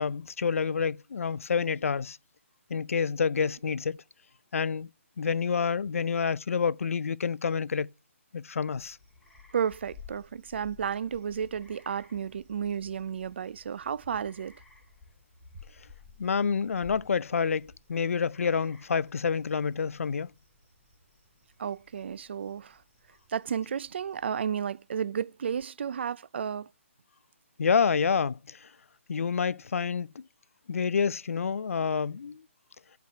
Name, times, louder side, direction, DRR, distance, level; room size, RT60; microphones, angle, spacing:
voice 1, 0.0-2.2 2.7-4.0 4.5-4.9 5.2-7.9 8.3-9.0 16.2-20.3 27.6-28.7 29.1-30.3 30.7-32.4, left 6 dB, 90° left, 0.4 m, -28 dB
sound 1, 8.5-24.7, left 4 dB, 5° left, 2.3 m, -55 dB
voice 2, 9.5-14.6 21.6-22.8 23.3-26.7, right 7 dB, 55° right, 0.4 m, -32 dB
10.5 x 4.6 x 5.6 m
hypercardioid pair, 165°, 7 cm